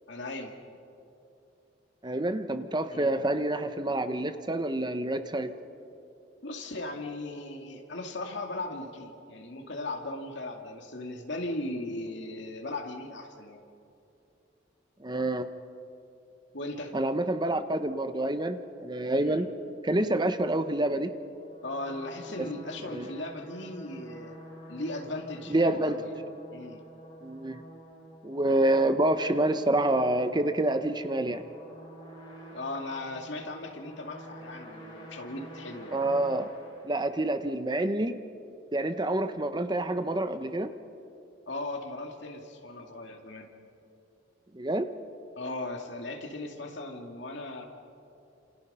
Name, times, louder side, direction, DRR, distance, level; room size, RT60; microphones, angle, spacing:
voice 1, 0.1-0.5 2.9-3.1 6.4-13.6 16.5-17.0 19.2-19.3 20.0-20.3 21.6-24.4 24.7-26.1 26.5-26.8 32.5-36.0 41.5-43.5 45.4-47.7, left 2 dB, 60° left, 3 dB, 2.4 m, -38 dB
voice 2, 2.0-5.5 15.0-15.5 16.9-19.5 19.8-21.1 22.4-22.5 22.9-23.1 25.5-26.0 27.2-27.6 28.2-31.4 35.9-36.5 36.8-38.1 38.7-40.7 44.5-44.9, right 1 dB, 20° right, 9 dB, 0.9 m, -27 dB
sound 1, 21.2-37.5, equal, 25° left, 7.0 m, -48 dB
28.0 x 27.5 x 5.6 m, 2.8 s
head